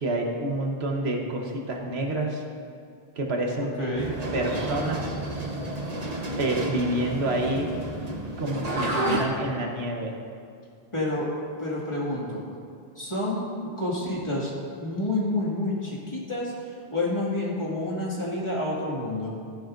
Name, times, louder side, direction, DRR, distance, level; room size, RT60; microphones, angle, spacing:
voice 1, 0.0-2.4 3.2-3.8 4.3-5.2 6.4-7.7 8.4-10.1, right 2 dB, 85° right, 1 dB, 1.4 m, -28 dB
voice 2, 3.6-4.2 10.9-11.3 11.6-12.4 13.0-13.5 13.8-14.5 14.8-16.5 16.9-19.3, left 1 dB, 30° left, -5 dB, 2.1 m, -28 dB
sound 1, 4.0-9.2, right 1 dB, 40° right, 1.1 m, -31 dB
14.5 x 10.0 x 2.5 m, 2.3 s
omnidirectional pair, 1.0 m